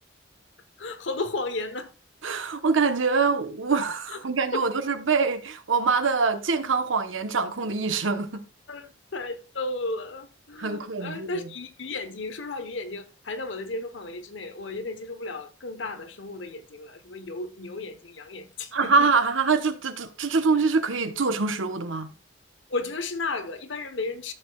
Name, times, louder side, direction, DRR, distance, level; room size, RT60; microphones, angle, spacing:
voice 1, 0.8-1.9 4.1-4.2 4.5-4.6 8.7-18.9 22.7-24.3, left 3 dB, 70° left, 1.0 m, -34 dB
voice 2, 2.2-8.4 10.6-11.5 18.7-22.1, right 4 dB, 85° right, 1.0 m, -24 dB
13.5 x 6.6 x 2.3 m
head